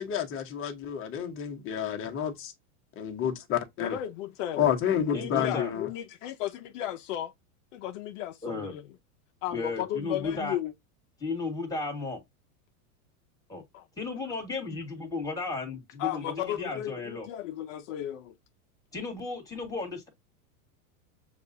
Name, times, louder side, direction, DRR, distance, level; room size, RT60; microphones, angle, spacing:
voice 1, 0.0-2.5 3.0-4.0 4.6-5.9, left 9 dB, 30° left, 1.0 m, -29 dB
voice 2, 3.8-4.7 5.1-7.3 7.7-8.8 9.4-10.7 13.7-13.9 16.0-18.4, left 12 dB, 55° left, 0.6 m, -35 dB
voice 3, 5.1-5.7 8.4-8.8 9.5-10.6 11.2-12.2 13.5-13.6 14.0-17.3 18.9-20.1, left 3 dB, 10° left, 1.6 m, -34 dB
7.2 x 2.4 x 2.6 m
supercardioid pair, 140°, 46 cm